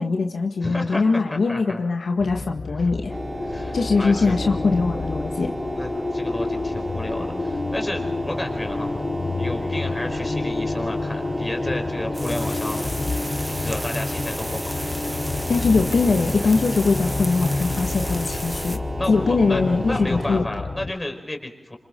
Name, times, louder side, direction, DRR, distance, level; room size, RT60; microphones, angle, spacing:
voice 1, 0.0-3.1 3.7-5.5 15.5-18.8 19.1-20.5, left 4 dB, 80° left, 3 dB, 1.7 m, -21 dB
voice 2, 0.6-1.8 2.8-2.9 3.4-4.4 5.7-9.0 9.3-12.9 13.5-14.7 19.0-21.8, left 1 dB, 15° left, 3 dB, 4.5 m, -32 dB
sound 1, 2.2-20.9, left 3 dB, 45° left, 1.0 m, -29 dB
sound 2, 3.1-20.4, right 1 dB, 20° right, 2.8 m, -34 dB
sound 3, 12.1-18.8, equal, 5° right, 1.3 m, -35 dB
28.0 x 26.5 x 3.9 m, 0.89 s
wide cardioid pair, 115°, 0 cm